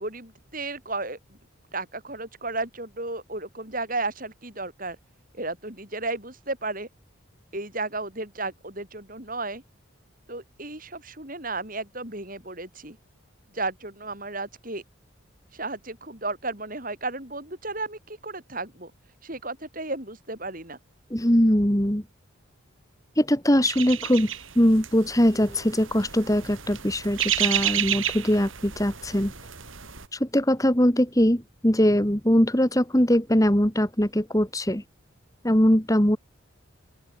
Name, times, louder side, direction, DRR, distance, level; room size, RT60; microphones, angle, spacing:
voice 1, 0.0-1.4 1.7-5.0 5.3-6.9 7.5-9.6 10.3-13.0 13.5-14.8 15.5-18.9 19.2-20.8, right 2 dB, 40° right, 7.2 m, -33 dB
voice 2, 21.1-22.0 23.2-29.3 30.1-34.8 35.4-36.2, equal, 15° left, 2.3 m, -21 dB
sound 1, 23.7-30.1, right 11 dB, 80° right, 6.4 m, -31 dB
open air
head